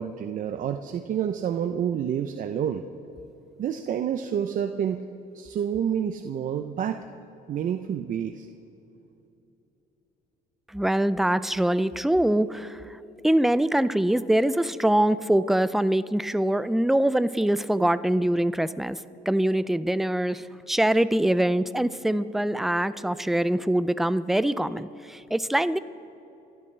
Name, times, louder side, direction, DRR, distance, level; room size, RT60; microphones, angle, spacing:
voice 1, 0.0-2.8 3.6-5.0 5.3-7.0 7.5-8.5, right 8 dB, 50° right, 7 dB, 0.6 m, -28 dB
voice 2, 10.7-13.0 13.2-25.8, right 1 dB, ahead, 14 dB, 0.4 m, -24 dB
29.0 x 12.0 x 3.3 m, 2.9 s
cardioid pair, 110°, 17 cm